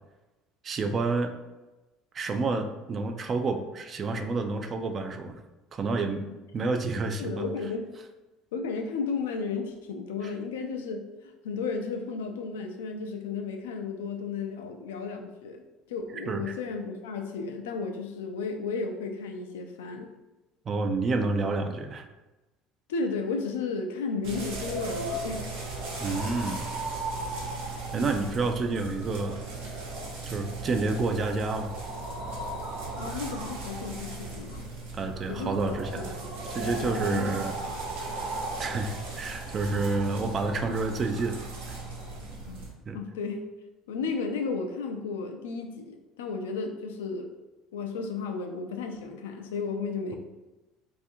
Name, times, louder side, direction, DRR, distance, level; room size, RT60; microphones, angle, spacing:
voice 1, 0.6-1.3 2.1-5.4 5.7-6.3 6.5-7.5 10.2-10.3 16.3-16.6 20.7-22.1 26.0-26.6 27.9-29.4 30.3-31.7 34.9-36.1 36.5-37.5 38.6-41.4 41.7-41.8 42.9-43.0, right 3 dB, 40° right, 6 dB, 0.3 m, -29 dB
voice 2, 7.2-7.9 8.5-15.6 15.9-20.1 22.9-25.4 32.9-34.7 35.3-36.3 36.8-37.3 42.5-42.6 42.9-43.4 43.9-47.3 47.7-50.2, left 4 dB, 80° left, 5 dB, 0.3 m, -33 dB
sound 1, 24.2-42.7, right 2 dB, 75° right, 0.7 m, -36 dB
2.6 x 2.4 x 2.6 m, 1.1 s
hypercardioid pair, 65°, 0 cm